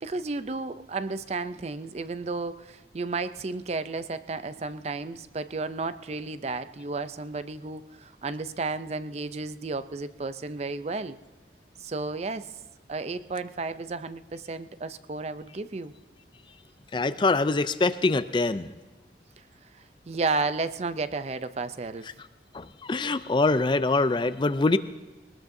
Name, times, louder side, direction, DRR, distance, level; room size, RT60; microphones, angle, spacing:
voice 1, 0.0-11.2 11.8-12.5 12.9-15.9 20.1-22.1, right 3 dB, 35° right, 13 dB, 0.5 m, -32 dB
voice 2, 16.9-18.7 22.5-24.8, left 3 dB, 25° left, 13 dB, 0.4 m, -24 dB
20.5 x 19.5 x 2.7 m, 1.2 s
head